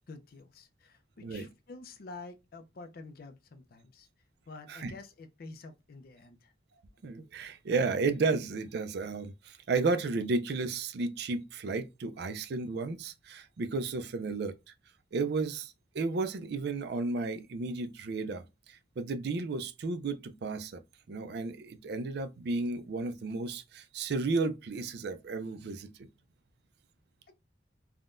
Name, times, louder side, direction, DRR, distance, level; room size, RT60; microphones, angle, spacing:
voice 1, 0.1-4.1 4.5-6.5, left 3 dB, 55° left, 0.5 m, -48 dB
voice 2, 7.0-14.5 15.1-20.8 21.1-25.9, right 3 dB, 60° right, 0.4 m, -33 dB
3.5 x 2.2 x 2.5 m
head